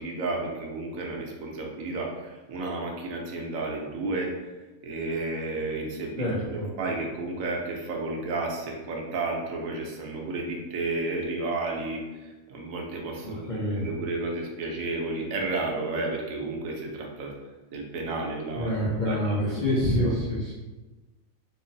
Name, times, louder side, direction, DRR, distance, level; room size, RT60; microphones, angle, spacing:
voice 1, 0.0-4.3 4.8-17.4 17.7-20.2, right 2 dB, 80° right, 0 dB, 1.0 m, -32 dB
voice 2, 6.2-6.7 13.2-13.9 18.6-20.6, left 1 dB, 65° left, -7 dB, 0.4 m, -27 dB
3.6 x 2.0 x 2.6 m, 1.2 s
omnidirectional pair, 1.4 m